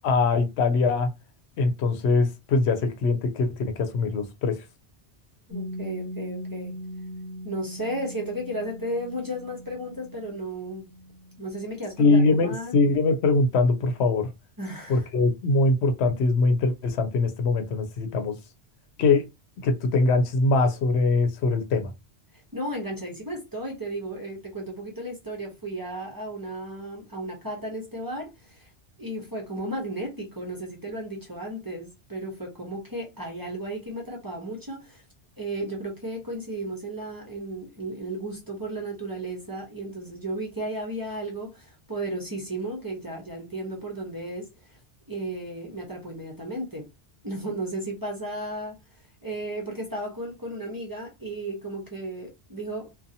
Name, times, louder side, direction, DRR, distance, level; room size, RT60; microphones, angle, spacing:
voice 1, 0.0-1.1 1.6-4.6 12.0-14.3 14.9-18.4 19.0-19.3 19.6-21.9, left 3 dB, 80° left, 0.8 m, -22 dB
Piano, 5.5-12.8, equal, 40° left, 1.1 m, -40 dB
voice 2, 5.5-6.8 7.4-10.9 11.4-12.7 14.6-15.1 22.5-28.7 29.0-35.0 35.4-44.8 45.1-46.9 47.2-48.8 49.2-52.9, right 1 dB, 25° right, 0.7 m, -34 dB
2.6 x 2.3 x 2.6 m
omnidirectional pair, 1.1 m